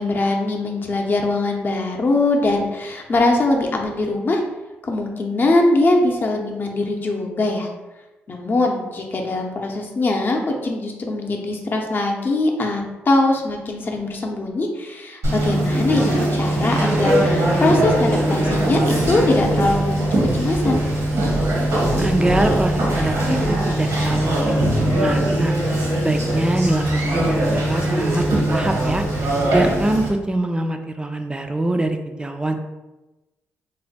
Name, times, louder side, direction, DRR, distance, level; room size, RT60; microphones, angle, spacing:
voice 1, 0.0-4.4 4.8-7.7 8.3-20.8, left 2 dB, 40° left, 1 dB, 0.7 m, -21 dB
Conversation, 15.2-30.1, right 1 dB, 80° right, 1.2 m, -20 dB
voice 2, 22.0-24.6 24.9-25.6 26.0-29.0 29.5-32.5, right 1 dB, 15° right, 5 dB, 0.4 m, -24 dB
3.3 x 2.1 x 4.1 m, 1.1 s
cardioid pair, 75°, 5 cm